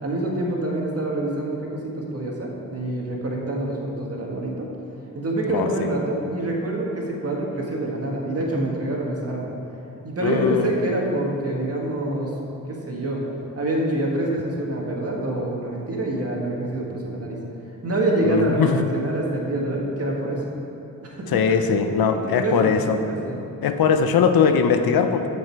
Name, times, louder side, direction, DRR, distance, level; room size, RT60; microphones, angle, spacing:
voice 1, 0.0-4.7 5.1-9.5 10.0-12.3 12.7-13.2 13.6-17.4 17.8-20.4 21.0-21.3 22.2-23.4, right 1 dB, 45° right, -2 dB, 1.8 m, -26 dB
voice 2, 5.5-5.9 10.2-10.7 18.2-18.8 21.3-23.0 23.6-25.3, left 6 dB, 90° left, 7 dB, 0.7 m, -20 dB
13.5 x 5.4 x 4.7 m, 2.8 s
wide cardioid pair, 105°, 35 cm